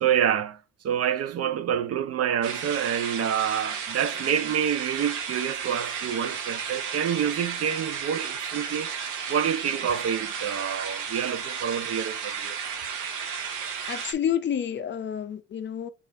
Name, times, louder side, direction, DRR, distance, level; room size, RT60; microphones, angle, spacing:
voice 1, 0.0-8.9 9.3-12.6, right 9 dB, 55° right, 0.5 m, -27 dB
sound 1, 2.4-14.1, right 7 dB, 80° right, 0.9 m, -33 dB
voice 2, 13.9-15.9, left 9 dB, 40° left, 0.5 m, -29 dB
5.4 x 2.4 x 3.4 m
cardioid pair, 90°, 30 cm